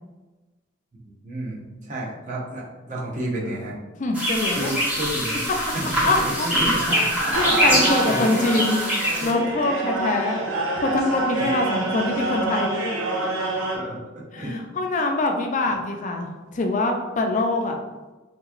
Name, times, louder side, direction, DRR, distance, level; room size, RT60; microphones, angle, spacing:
voice 1, 1.0-3.7 4.5-5.4 5.7-9.5 11.4-11.7 13.7-14.6 14.9-15.1, right 1 dB, 40° right, -4 dB, 0.8 m, -31 dB
voice 2, 4.0-4.7 6.1-6.5 6.8-7.1 7.4-8.8 9.2-10.4 10.8-12.7 14.3-17.8, left 2 dB, 40° left, 3 dB, 0.4 m, -24 dB
sound 1, 4.1-9.3, equal, 10° right, 0.9 m, -24 dB
sound 2, 7.3-13.8, right 2 dB, 75° right, 0.7 m, -27 dB
3.5 x 2.9 x 2.4 m, 1.2 s
head